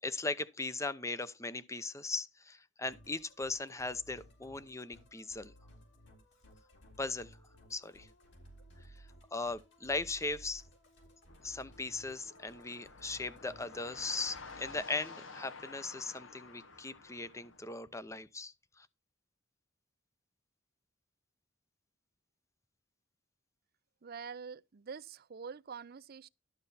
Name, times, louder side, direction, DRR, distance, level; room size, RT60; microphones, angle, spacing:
voice 1, 0.0-5.5 7.0-7.4 7.7-8.1 8.9-9.0 9.3-10.6 11.4-18.9, left 3 dB, 15° left, 0.7 m, -38 dB
Musical instrument, 2.8-14.8, equal, 65° left, 3.7 m, -58 dB
sound 1, 11.3-17.6, left 4 dB, 85° left, 1.5 m, -51 dB
voice 2, 24.0-26.3, right 5 dB, 50° right, 0.5 m, -45 dB
12.0 x 6.7 x 4.2 m
head